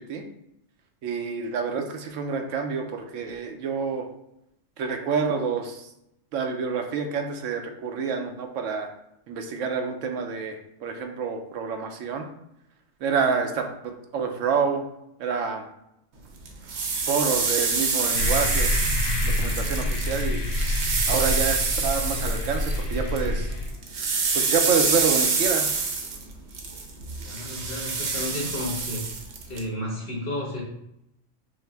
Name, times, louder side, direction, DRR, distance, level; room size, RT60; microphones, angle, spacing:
voice 1, 1.0-4.1 4.8-5.9 6.3-8.9 9.3-12.3 13.0-14.9 15.2-15.6 17.1-18.7 19.2-20.4 21.1-23.5 24.3-25.7, right 5 dB, 90° right, 4 dB, 1.0 m, -28 dB
sound 1, 16.5-23.3 23.5-29.6, right 4 dB, 65° right, 1.0 m, -27 dB
sound 2, 18.1-23.7, left 1 dB, 80° left, 1.2 m, -27 dB
voice 2, 27.2-29.1 29.5-30.6, left 1 dB, 50° left, -3 dB, 1.5 m, -32 dB
5.3 x 2.1 x 3.4 m, 0.82 s
omnidirectional pair, 1.3 m